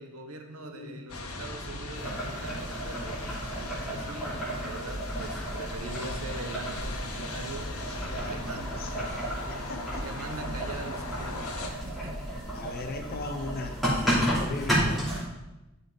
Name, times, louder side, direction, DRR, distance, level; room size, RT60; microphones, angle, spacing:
voice 1, 0.0-7.7 8.3-8.9 10.0-12.3, right 2 dB, 75° right, 5 dB, 1.0 m, -42 dB
voice 2, 0.6-1.1 1.3-1.4 1.8-1.9 5.8-6.1 7.7-10.1 12.5-15.1, left 3 dB, 40° left, 4 dB, 0.7 m, -40 dB
sound 1, 1.1-11.7, left 2 dB, 75° left, 1.2 m, -39 dB
Boiling, 2.0-15.2, equal, ahead, 2.9 m, -32 dB
12.0 x 5.3 x 3.9 m, 1.0 s
head